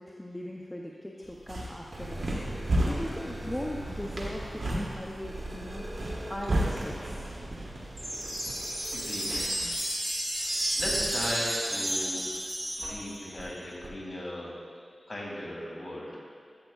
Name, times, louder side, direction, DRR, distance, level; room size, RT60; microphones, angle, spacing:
voice 1, 0.0-2.4 2.9-5.8 6.3-7.2, left 1 dB, 15° left, -2 dB, 0.5 m, -39 dB
sound 1, 1.2-9.8, right 1 dB, 75° right, 1.4 m, -34 dB
sound 2, 1.8-12.2 12.8-12.9 13.4-13.5 13.8-13.9, right 1 dB, 55° right, 2.0 m, -41 dB
voice 2, 7.8-9.8 10.4-12.2 12.8-14.5 15.1-16.2, left 1 dB, 35° left, -5 dB, 2.2 m, -38 dB
sound 3, 8.0-13.4, right 1 dB, 20° right, 1.1 m, -32 dB
12.0 x 7.7 x 2.3 m, 2.2 s
wide cardioid pair, 95°, 0 cm